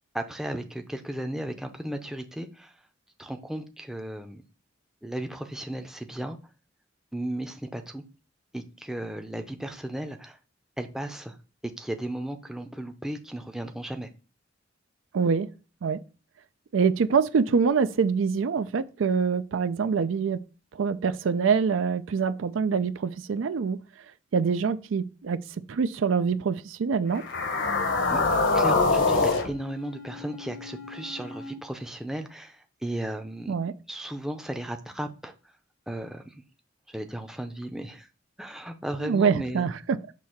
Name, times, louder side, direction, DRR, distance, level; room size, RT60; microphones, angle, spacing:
voice 1, 0.1-2.7 3.2-4.4 5.0-6.4 7.1-8.0 8.5-10.4 10.8-11.4 11.6-14.1 28.1-28.2 28.5-33.5 33.9-35.3 35.9-36.4 36.9-38.1 38.4-39.6, right 1 dB, 5° right, 0.5 m, -35 dB
voice 2, 15.1-15.5 15.8-16.0 16.7-20.4 20.8-23.8 24.3-25.4 25.7-27.2 33.5-33.7 39.0-40.0, right 5 dB, 85° right, 0.4 m, -25 dB
sound 1, 27.2-31.5, left 3 dB, 75° left, 1.1 m, -26 dB
6.2 x 2.8 x 5.6 m
head